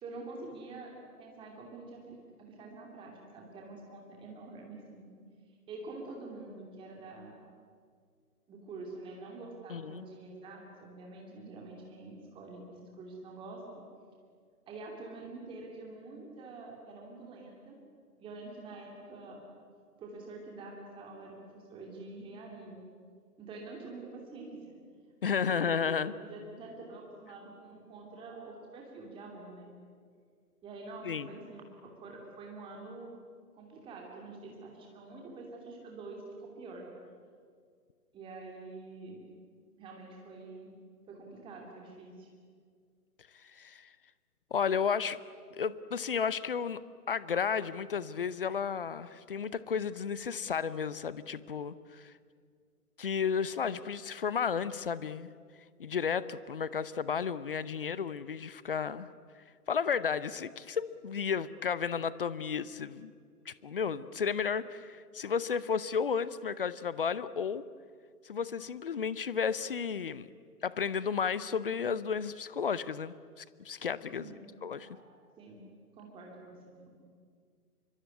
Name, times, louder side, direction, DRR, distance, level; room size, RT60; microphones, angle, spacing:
voice 1, 0.0-5.1 5.7-7.3 8.5-13.8 14.7-17.7 18.2-19.4 20.0-22.8 23.4-24.6 25.3-25.9 26.2-29.7 30.6-33.1 33.5-36.9 38.1-39.2 39.8-40.7 41.1-42.3 63.5-63.6 74.2-75.6 75.9-76.9, right 3 dB, 10° right, 0 dB, 2.8 m, -46 dB
voice 2, 9.7-10.1 25.2-26.1 31.0-31.3 43.5-43.9 44.5-45.2 45.5-46.8 47.1-52.1 53.0-55.3 55.8-59.1 59.7-63.1 63.5-67.6 68.2-70.3 70.6-74.3 74.6-74.9, left 6 dB, 35° left, 17 dB, 0.8 m, -33 dB
25.5 x 23.5 x 9.7 m, 2.1 s
figure-of-eight pair, 135°, 46 cm